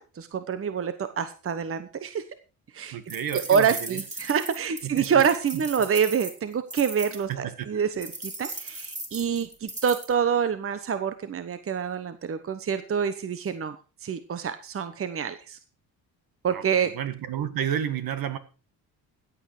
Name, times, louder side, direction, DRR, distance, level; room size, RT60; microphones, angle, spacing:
voice 1, 0.0-2.2 2.7-3.0 3.3-13.8 14.0-15.6 16.4-16.9, right 7 dB, 35° right, 11 dB, 1.1 m, -26 dB
voice 2, 2.9-4.0 4.8-5.2 5.5-5.6 7.3-7.8 16.5-18.4, right 9 dB, 60° right, 11 dB, 1.9 m, -31 dB
sound 1, 3.1-7.2 8.0-10.1, right 2 dB, 15° right, 3.2 m, -37 dB
15.0 x 8.5 x 4.9 m, 0.34 s
cardioid pair, 105°, 39 cm